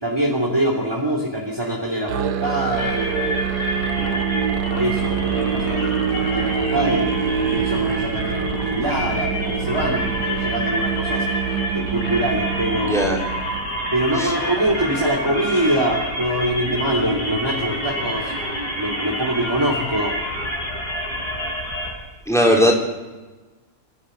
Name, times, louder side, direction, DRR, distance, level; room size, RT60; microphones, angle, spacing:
voice 1, 0.0-3.4 4.0-4.3 4.6-11.3 11.7-13.3 13.9-18.3 18.7-20.2 22.4-22.7, right 1 dB, 15° right, -1 dB, 2.9 m, -24 dB
Musical instrument, 2.1-13.7, right 8 dB, 85° right, 1.6 m, -25 dB
sound 1, 2.7-21.9, equal, 75° left, 8.4 m, -28 dB
voice 2, 12.8-13.2 14.2-14.3 22.3-22.7, equal, ahead, -1 dB, 4.6 m, -18 dB
29.0 x 13.0 x 8.0 m, 1.2 s
omnidirectional pair, 1.7 m